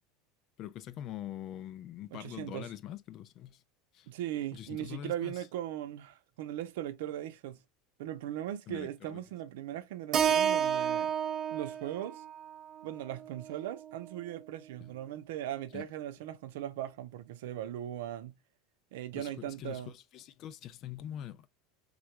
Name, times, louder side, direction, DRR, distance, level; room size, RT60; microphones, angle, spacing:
voice 1, 0.6-3.6 3.9-4.1 4.5-5.3 8.7-9.2 15.7-15.9 19.1-21.5, left 11 dB, 45° left, 0.4 m, -44 dB
voice 2, 2.1-2.7 4.1-7.6 8.0-11.1 11.5-12.2 12.8-18.4 18.9-19.9, right 12 dB, 85° right, 0.6 m, -39 dB
Keyboard (musical), 10.1-14.4, right 8 dB, 40° right, 0.5 m, -32 dB
3.6 x 2.3 x 3.0 m
supercardioid pair, 140°, 0 cm